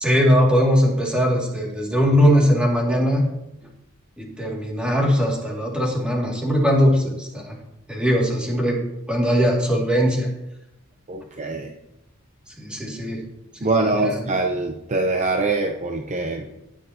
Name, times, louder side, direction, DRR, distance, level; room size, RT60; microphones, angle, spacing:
voice 1, 0.0-3.2 4.2-7.5 7.9-8.8 9.1-10.3 12.6-13.2 13.6-14.2, equal, 5° right, -2 dB, 2.3 m, -20 dB
voice 2, 11.1-11.7 13.6-16.5, right 2 dB, 35° right, 3 dB, 0.7 m, -23 dB
18.0 x 7.2 x 2.9 m, 0.90 s
head